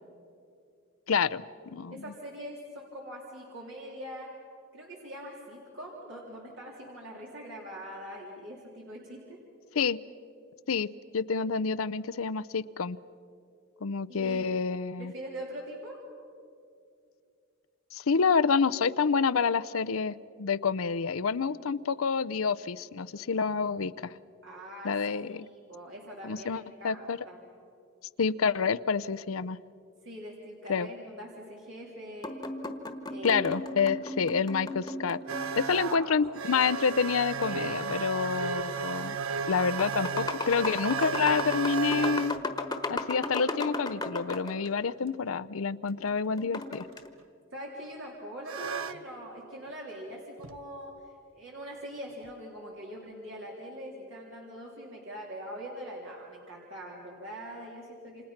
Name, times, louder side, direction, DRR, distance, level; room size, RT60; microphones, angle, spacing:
voice 1, 1.1-1.4 1.7-2.0 9.7-10.0 10.7-10.9 11.1-13.0 13.8-15.1 17.9-24.2 24.8-25.5 26.2-27.2 28.2-29.6 30.7-30.9 33.2-35.2 35.6-39.2 39.5-42.4 42.9-46.9, left 5 dB, 85° left, 15 dB, 0.6 m, -28 dB
voice 2, 1.9-4.3 4.7-9.4 14.1-14.4 15.0-16.0 24.4-27.4 30.0-32.4 33.1-33.5 35.7-36.2 47.5-50.9 51.3-58.2, equal, 65° right, -3 dB, 3.5 m, -43 dB
sound 1, 32.2-35.9 37.4-38.3 39.1-39.2 39.6-44.7 46.4-47.1, left 2 dB, 20° left, 1.3 m, -36 dB
sound 2, 35.3-42.4 46.7-47.0 48.5-49.0 50.4-50.6 52.2-52.3, right 5 dB, 85° right, 0.9 m, -34 dB
29.0 x 27.0 x 5.9 m, 2.5 s
head